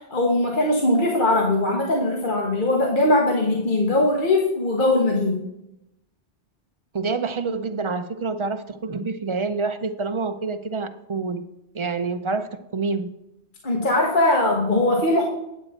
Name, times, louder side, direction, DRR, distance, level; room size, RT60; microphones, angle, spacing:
voice 1, 0.1-5.4 13.6-15.2, left 2 dB, 45° left, -1 dB, 1.4 m, -20 dB
voice 2, 6.9-11.5 11.7-13.1, right 4 dB, 40° right, 9 dB, 0.5 m, -27 dB
9.3 x 7.9 x 4.2 m, 0.84 s
omnidirectional pair, 1.1 m